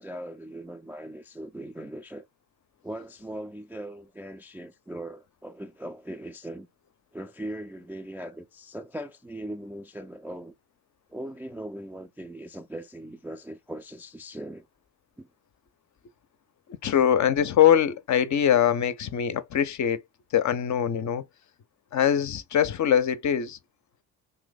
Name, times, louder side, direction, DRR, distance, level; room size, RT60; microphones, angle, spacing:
voice 1, 0.0-2.3 2.8-6.7 7.1-10.5 11.1-14.7 15.2-15.3, right 1 dB, 5° right, 0.3 m, -39 dB
voice 2, 16.8-20.0 20.3-21.2 21.9-23.6, left 9 dB, 40° left, 0.6 m, -22 dB
2.9 x 2.6 x 3.9 m
hypercardioid pair, 50°, 47 cm